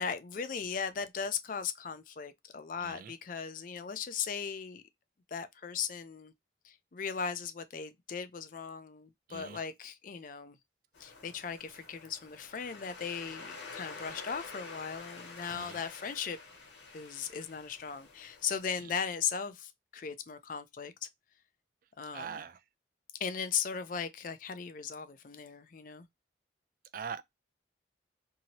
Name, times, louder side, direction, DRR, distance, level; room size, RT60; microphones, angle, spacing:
voice 1, 0.0-4.8 5.3-6.3 6.6-10.6 11.0-16.4 16.9-20.9 22.0-22.4 23.2-26.1, left 6 dB, 45° left, 0.4 m, -37 dB
voice 2, 2.8-3.1 9.3-9.6 15.5-15.8 18.8-18.9 22.1-22.6 26.9-27.2, right 6 dB, 45° right, 0.3 m, -42 dB
Waves surf, 10.9-18.7, left 4 dB, 75° left, 1.3 m, -48 dB
2.8 x 2.7 x 2.9 m
head